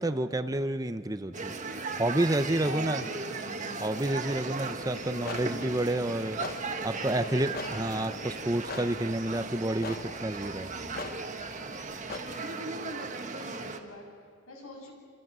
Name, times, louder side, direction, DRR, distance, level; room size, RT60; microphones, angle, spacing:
voice 1, 0.0-3.1 3.8-6.4 6.8-10.7, right 1 dB, 15° right, 11 dB, 0.7 m, -30 dB
sound 1, 1.3-13.8, right 3 dB, 35° right, 1.7 m, -37 dB
voice 2, 2.6-3.9 4.8-5.7 7.2-8.1 12.1-14.9, left 2 dB, 90° left, 0 dB, 7.5 m, -46 dB
sound 2, 4.7-12.2, left 3 dB, 45° left, 1.2 m, -43 dB
28.0 x 27.0 x 6.3 m, 2.3 s
head